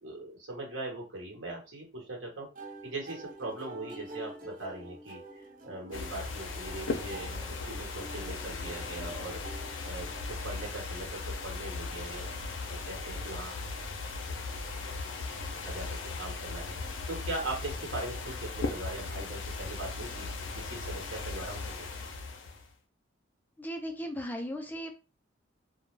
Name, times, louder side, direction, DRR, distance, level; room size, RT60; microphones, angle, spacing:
voice 1, 0.0-2.5 2.8-9.4 9.8-12.3 12.7-13.6 15.6-15.9 16.1-16.8 17.1-20.3 20.5-21.9, right 2 dB, 80° right, -1 dB, 1.3 m, -40 dB
sound 1, 2.6-10.5, right 2 dB, 45° right, 0.6 m, -47 dB
sound 2, 5.9-22.7, left 3 dB, 85° left, 0.5 m, -38 dB
voice 2, 23.6-24.9, equal, 10° left, 4 dB, 0.4 m, -36 dB
2.4 x 2.1 x 3.1 m, 0.30 s
head